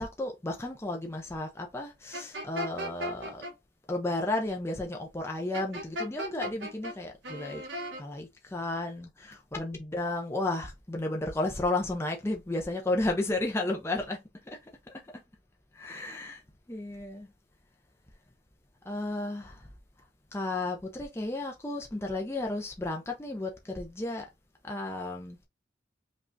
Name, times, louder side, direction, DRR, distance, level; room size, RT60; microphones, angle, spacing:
voice 1, 0.0-3.4 3.9-7.6 8.0-14.6 14.9-15.1 15.7-16.4 16.7-17.3 18.8-19.7 20.3-24.3 24.6-25.4, left 2 dB, 15° left, 0.5 m, -33 dB
sound 1, 2.1-3.5 5.5-6.9 7.2-8.0, equal, 90° right, 1.3 m, -36 dB
5.2 x 2.4 x 2.5 m
head